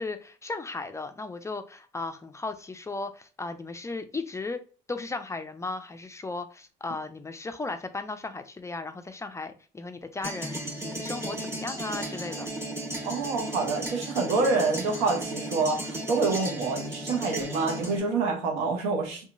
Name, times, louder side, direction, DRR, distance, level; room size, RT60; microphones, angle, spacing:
voice 1, 0.0-4.6 4.9-12.5, left 3 dB, 15° left, 0.3 m, -36 dB
sound 1, 10.2-18.0, right 1 dB, 15° right, 0.9 m, -35 dB
voice 2, 13.0-19.2, right 4 dB, 85° right, 0.8 m, -27 dB
2.8 x 2.3 x 2.5 m
supercardioid pair, 70°, 18 cm